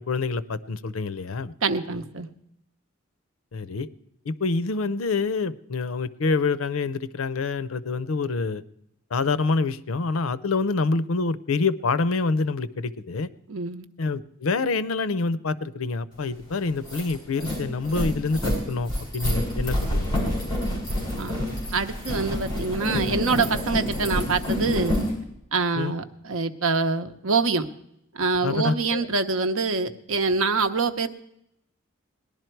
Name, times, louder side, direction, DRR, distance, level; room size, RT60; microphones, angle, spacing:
voice 1, 0.0-1.5 3.5-3.9 4.3-8.6 9.1-13.3 14.0-20.1 25.8-25.9 28.4-29.1, left 4 dB, 80° left, 17 dB, 0.6 m, -26 dB
voice 2, 1.6-2.3 13.5-13.9 21.2-21.4 21.7-25.0 25.5-27.7 28.1-31.1, right 4 dB, 75° right, 9 dB, 0.8 m, -25 dB
sound 1, 16.3-16.4 16.7-25.1, left 1 dB, 25° left, 6.1 m, -28 dB
18.5 x 11.5 x 4.5 m, 0.79 s
head